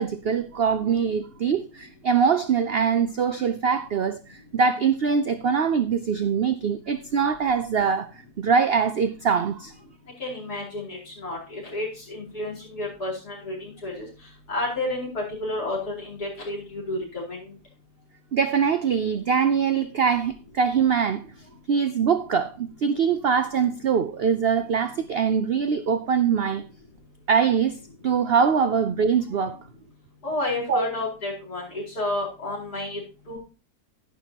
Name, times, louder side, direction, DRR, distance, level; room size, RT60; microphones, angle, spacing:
voice 1, 0.0-9.7 18.3-21.3 21.7-26.6 27.3-27.8 28.0-29.6 30.7-30.9, right 6 dB, 70° right, 0.5 m, -23 dB
voice 2, 10.2-14.1 14.5-17.4 30.2-33.0 33.3-33.4, left 2 dB, 75° left, 5.1 m, -31 dB
11.0 x 11.0 x 2.9 m
omnidirectional pair, 1.7 m